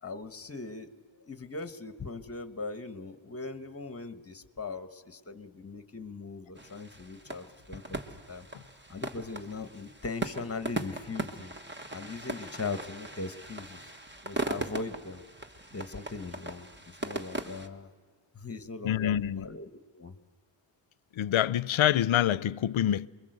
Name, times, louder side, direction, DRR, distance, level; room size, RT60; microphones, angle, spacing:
voice 1, 0.0-0.9 1.2-8.0 8.3-8.5 8.9-11.5 11.9-13.9 14.2-15.2 15.7-17.9 18.3-20.2, left 3 dB, 30° left, 1.2 m, -40 dB
sound 1, 6.6-17.7, right 2 dB, 25° right, 1.4 m, -39 dB
voice 2, 18.8-19.5 21.1-23.1, left 11 dB, 75° left, 0.7 m, -26 dB
28.5 x 22.5 x 7.9 m
wide cardioid pair, 160°, 48 cm